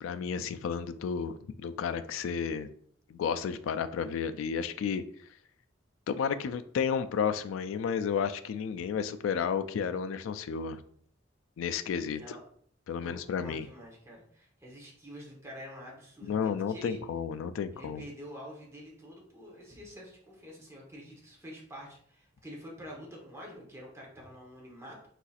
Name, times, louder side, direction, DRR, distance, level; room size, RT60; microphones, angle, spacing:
voice 1, 0.0-2.7 3.1-5.0 6.1-10.8 11.6-12.4 12.9-13.7 16.2-18.0, left 6 dB, 75° left, 10 dB, 0.3 m, -32 dB
voice 2, 13.0-17.0 17.7-25.0, equal, 15° right, -3 dB, 1.0 m, -47 dB
4.7 x 4.1 x 2.4 m, 0.62 s
head